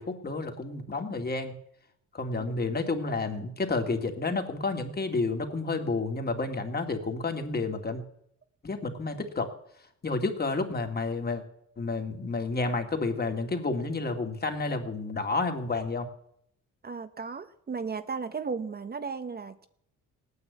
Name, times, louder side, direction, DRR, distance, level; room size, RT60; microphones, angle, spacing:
voice 1, 0.0-1.6 2.1-8.0 8.6-9.5 10.0-11.4 11.8-16.1, left 3 dB, 30° left, 5 dB, 2.3 m, -30 dB
voice 2, 16.8-19.7, right 5 dB, 30° right, 10 dB, 0.9 m, -35 dB
17.5 x 9.5 x 8.2 m, 0.72 s
cardioid pair, 90°, 30 cm